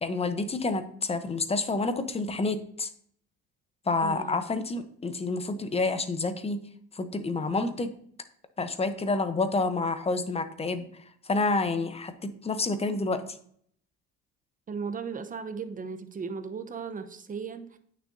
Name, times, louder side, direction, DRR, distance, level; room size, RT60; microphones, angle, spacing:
voice 1, 0.0-2.9 3.9-6.6 6.9-7.9 8.6-10.9 11.2-13.2, left 3 dB, 20° left, 10 dB, 0.8 m, -28 dB
voice 2, 4.0-4.4 14.7-17.7, right 5 dB, 25° right, 10 dB, 0.8 m, -36 dB
8.9 x 6.5 x 2.6 m, 0.63 s
cardioid pair, 105°, 30 cm